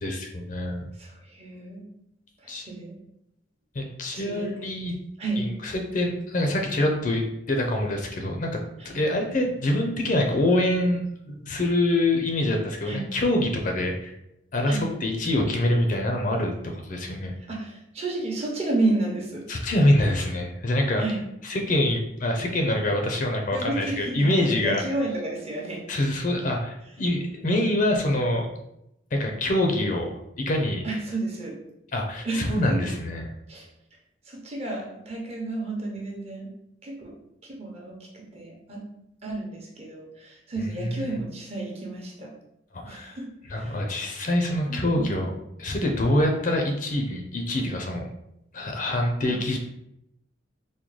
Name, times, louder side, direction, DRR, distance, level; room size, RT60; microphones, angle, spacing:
voice 1, 0.0-0.9 2.5-2.7 3.7-5.0 5.4-8.6 8.8-14.1 14.5-17.3 19.5-21.0 21.5-24.8 25.9-28.5 29.1-30.1 30.4-30.8 31.9-33.3 40.6-41.2 42.7-43.2 43.5-45.3 45.6-48.1 48.5-49.6, left 1 dB, 45° left, 2 dB, 0.5 m, -25 dB
voice 2, 1.0-1.8 2.4-3.0 4.1-4.5 5.2-5.4 8.8-9.0 12.8-13.1 14.7-14.9 17.5-19.5 21.0-21.2 23.5-25.9 30.8-31.6 32.2-32.8 33.5-33.7 34.3-36.5 36.8-37.1 37.4-38.8 39.2-42.3 42.8-43.8 44.7-45.1 49.3-49.4, right 2 dB, 35° right, -2 dB, 0.8 m, -31 dB
3.6 x 2.2 x 3.1 m, 0.82 s
head